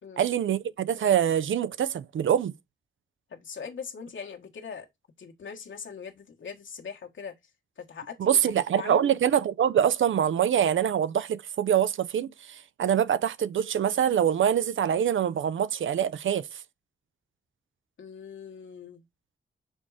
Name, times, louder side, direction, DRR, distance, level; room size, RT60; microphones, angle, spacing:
voice 1, 0.2-2.5 8.2-16.5, right 9 dB, 85° right, 0.5 m, -25 dB
voice 2, 3.3-4.9 5.2-7.3 7.8-8.4 8.7-9.1 18.0-19.0, left 6 dB, 85° left, 1.5 m, -41 dB
6.2 x 3.8 x 4.8 m
wide cardioid pair, 135°, 20 cm